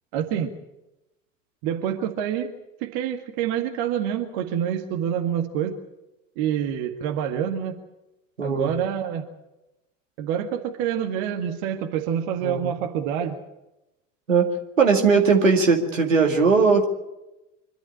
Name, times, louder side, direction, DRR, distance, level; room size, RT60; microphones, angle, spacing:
voice 1, 0.1-0.5 1.6-2.5 2.8-5.8 6.4-7.8 8.4-9.3 10.2-13.4, right 9 dB, 55° right, 5 dB, 1.8 m, -27 dB
voice 2, 8.4-8.7 12.4-12.7 14.3-14.5 14.8-16.9, right 5 dB, 80° right, 3 dB, 2.2 m, -19 dB
25.0 x 12.0 x 9.9 m, 0.96 s
figure-of-eight pair, 70°, 38 cm